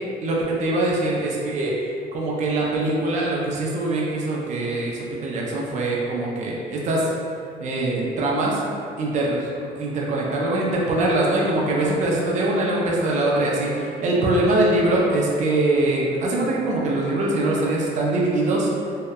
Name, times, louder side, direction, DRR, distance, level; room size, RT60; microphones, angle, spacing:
voice 1, 0.2-1.7 2.1-7.1 7.6-8.6 9.0-18.7, right 2 dB, 45° right, -3 dB, 0.4 m, -23 dB
2.7 x 2.1 x 2.2 m, 2.5 s
cardioid pair, 110°, 17 cm